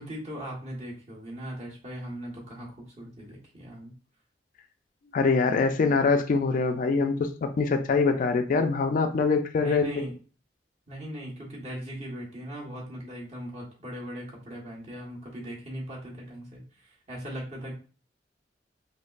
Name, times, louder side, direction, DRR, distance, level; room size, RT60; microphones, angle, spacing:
voice 1, 0.0-3.9 9.6-10.1 10.9-17.7, equal, 40° right, -4 dB, 1.2 m, -39 dB
voice 2, 5.1-10.1, left 4 dB, 50° left, 7 dB, 0.3 m, -24 dB
5.0 x 2.0 x 2.4 m, 0.37 s
head